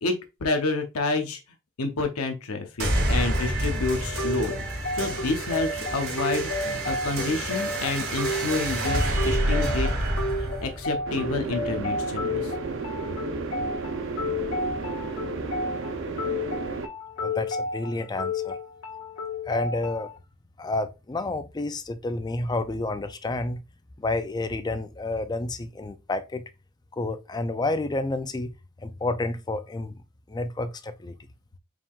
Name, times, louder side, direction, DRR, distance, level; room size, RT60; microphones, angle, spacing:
voice 1, 0.0-1.4 1.8-4.5 4.9-9.9 10.4-12.5, left 3 dB, 80° left, 0.7 m, -29 dB
sound 1, 2.8-11.8, right 1 dB, 75° right, 1.9 m, -28 dB
sound 2, 4.2-20.2, left 2 dB, 65° left, 1.3 m, -32 dB
sound 3, 11.1-16.9, right 4 dB, 60° right, 0.6 m, -33 dB
voice 2, 17.2-18.6 19.5-20.1 20.6-23.6 24.0-26.4 26.9-28.5 28.8-29.9 30.3-31.2, left 2 dB, 20° left, 0.4 m, -30 dB
4.8 x 3.6 x 2.4 m
head